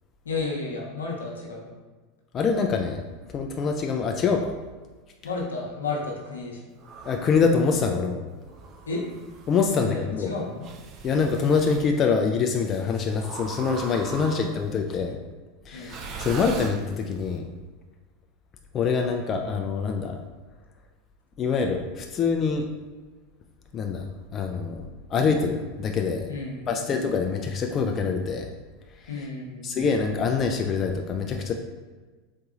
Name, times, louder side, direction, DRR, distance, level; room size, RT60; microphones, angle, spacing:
voice 1, 0.2-1.7 5.2-6.7 8.9-9.0 9.7-10.7 14.1-14.7 15.7-16.0 26.3-27.0 29.1-29.8, left 3 dB, 90° left, -2 dB, 0.7 m, -33 dB
voice 2, 2.3-3.0 3.3-4.6 7.1-8.2 9.5-10.3 11.0-15.2 15.7-17.5 18.7-20.2 21.4-22.7 23.7-24.0 24.3-26.3 26.7-28.5 28.9-29.1 29.6-31.5, left 5 dB, 35° left, 3 dB, 0.3 m, -25 dB
sound 1, 6.8-7.5 8.4-9.6 10.6-11.9 13.2-14.7 15.8-17.2, right 4 dB, 45° right, 0.4 m, -40 dB
4.0 x 2.6 x 2.4 m, 1.3 s
hypercardioid pair, 90°, 0 cm